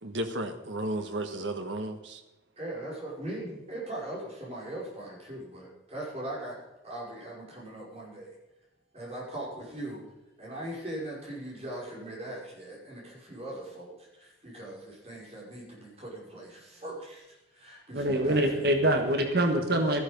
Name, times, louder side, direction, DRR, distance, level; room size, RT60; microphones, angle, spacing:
voice 1, 0.0-2.2, right 1 dB, 75° right, 7 dB, 1.4 m, -33 dB
voice 2, 2.6-6.6 6.8-8.3 8.9-10.0 10.4-18.7, right 1 dB, 35° right, -4 dB, 5.6 m, -40 dB
voice 3, 17.9-20.0, right 1 dB, 55° right, 4 dB, 1.4 m, -25 dB
13.0 x 12.0 x 5.3 m, 0.95 s
head